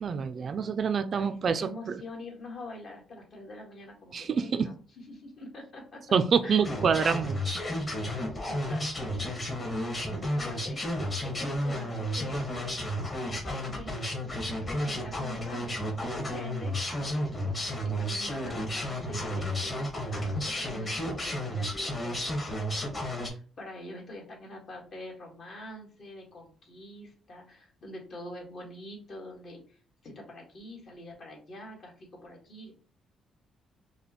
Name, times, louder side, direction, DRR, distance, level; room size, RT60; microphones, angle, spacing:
voice 1, 0.0-1.7 4.1-4.7 6.1-7.4, right 6 dB, 50° right, 10 dB, 0.4 m, -26 dB
voice 2, 1.2-6.0 6.4-6.7 8.4-9.4 9.9-10.8 11.2-12.8 13.3-15.8 16.2-19.8 20.1-22.6 23.1-32.7, left 1 dB, 55° left, -2 dB, 1.8 m, -45 dB
sound 1, 6.6-23.3, equal, 30° left, 1.4 m, -32 dB
4.9 x 2.3 x 3.0 m, 0.41 s
cardioid pair, 90°, 0 cm